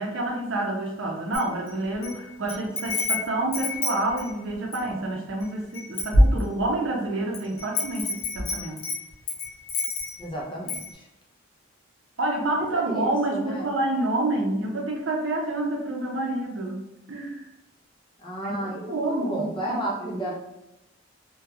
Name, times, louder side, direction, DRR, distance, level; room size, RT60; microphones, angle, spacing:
voice 1, 0.0-8.8 12.2-17.4 18.4-20.3, right 2 dB, 65° right, 0 dB, 0.6 m, -28 dB
Wind chime, 1.3-2.1 2.5-4.9 5.4-5.5 5.7-6.8 7.3-10.3 10.7-10.9, left 1 dB, 90° left, 0.7 m, -26 dB
voice 2, 10.2-11.1 12.6-13.7 18.2-20.3, right 1 dB, 25° left, -3 dB, 0.5 m, -33 dB
2.8 x 2.2 x 2.3 m, 0.91 s
head